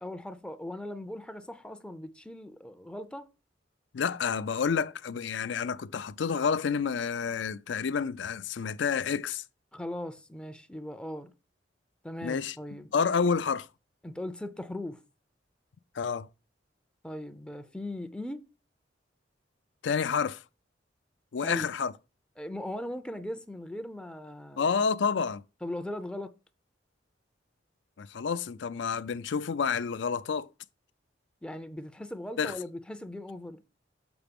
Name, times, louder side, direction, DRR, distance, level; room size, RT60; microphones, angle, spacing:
voice 1, 0.0-3.3 9.7-11.3 12.0-12.9 14.0-15.0 17.0-18.5 21.4-21.7 22.4-24.7 25.6-26.3 31.4-33.6, left 1 dB, 5° left, 0.4 m, -39 dB
voice 2, 3.9-9.4 12.2-12.6 12.9-13.7 15.9-16.3 19.8-20.4 21.3-21.9 24.6-25.4 28.0-30.5 32.4-32.6, left 6 dB, 70° left, 0.5 m, -29 dB
7.0 x 5.0 x 5.2 m
head